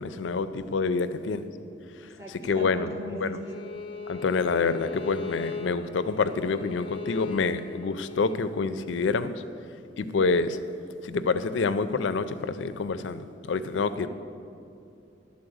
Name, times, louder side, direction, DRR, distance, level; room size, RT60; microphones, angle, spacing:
voice 1, 0.0-1.4 2.4-3.4 4.1-9.4 10.0-10.6 11.0-14.1, left 4 dB, 85° left, 12 dB, 0.4 m, -27 dB
voice 2, 2.0-3.5 13.7-14.1, equal, 15° right, -3 dB, 1.4 m, -39 dB
Bowed string instrument, 3.4-8.4, left 4 dB, 25° left, 0.7 m, -38 dB
12.0 x 4.2 x 7.8 m, 2.7 s
head